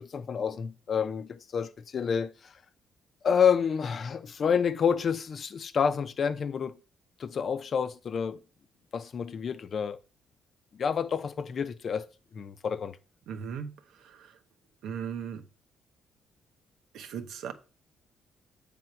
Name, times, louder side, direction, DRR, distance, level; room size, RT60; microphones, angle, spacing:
voice 1, 0.0-2.3 3.2-6.7 7.2-8.4 8.9-10.0 10.8-12.1 12.3-13.0, left 7 dB, 50° left, 0.6 m, -28 dB
voice 2, 13.3-13.7 14.0-14.4 14.8-15.4 16.9-17.5, right 7 dB, 80° right, 0.9 m, -37 dB
7.8 x 3.6 x 5.8 m
cardioid pair, 90°, 0 cm